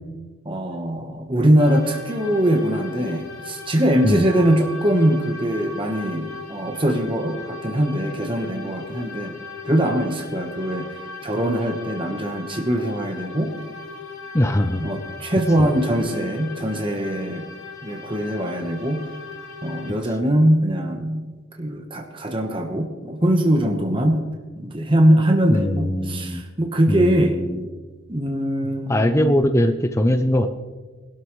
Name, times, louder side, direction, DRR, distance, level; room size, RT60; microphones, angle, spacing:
voice 1, 0.4-9.3 9.6-13.5 14.8-17.4 17.8-19.0 19.6-21.2 21.6-24.2 24.6-27.4 28.1-29.4, right 1 dB, 25° right, 3 dB, 1.1 m, -22 dB
sound 1, 1.6-19.9, left 4 dB, 85° left, 2.9 m, -38 dB
voice 2, 14.3-14.8 25.5-26.4 26.9-27.7 28.9-30.5, left 1 dB, 15° left, 7 dB, 0.5 m, -21 dB
20.5 x 12.5 x 3.2 m, 1.4 s
head